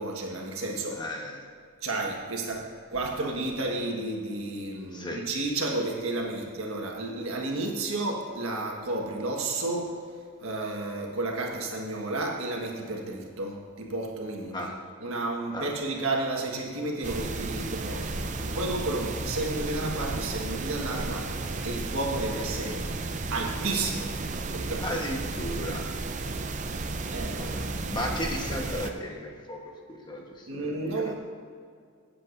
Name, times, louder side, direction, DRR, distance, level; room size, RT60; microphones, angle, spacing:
voice 1, 0.0-1.1 1.8-10.0 10.4-14.7 15.0-22.8 23.3-24.1 24.5-24.9 27.1-28.1 30.5-31.2, right 2 dB, 85° right, 0 dB, 1.5 m, -32 dB
voice 2, 0.9-1.4 4.9-5.2 14.5-14.7 15.5-15.7 24.8-25.8 27.4-27.6 27.9-29.6 29.9-31.1, left 1 dB, 20° left, 1 dB, 1.1 m, -35 dB
room tone cellar dead quiet- use very low breath tone, 17.0-28.9, right 3 dB, 35° right, 0.6 m, -33 dB
16.0 x 7.8 x 2.6 m, 2.2 s
head